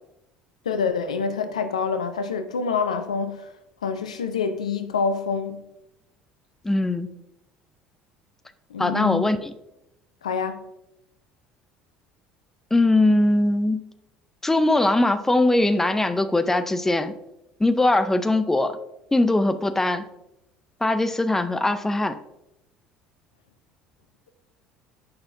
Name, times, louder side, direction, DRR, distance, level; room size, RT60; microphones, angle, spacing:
voice 1, 0.7-3.5 3.8-5.6 8.7-9.3 10.2-10.6, left 5 dB, 80° left, 0.5 m, -26 dB
voice 2, 6.6-7.2 8.8-9.5 12.7-13.8 14.4-17.1 17.6-18.8 19.1-20.1 20.8-22.2, left 2 dB, 10° left, 0.5 m, -21 dB
8.7 x 5.7 x 2.6 m
figure-of-eight pair, 60°, 4 cm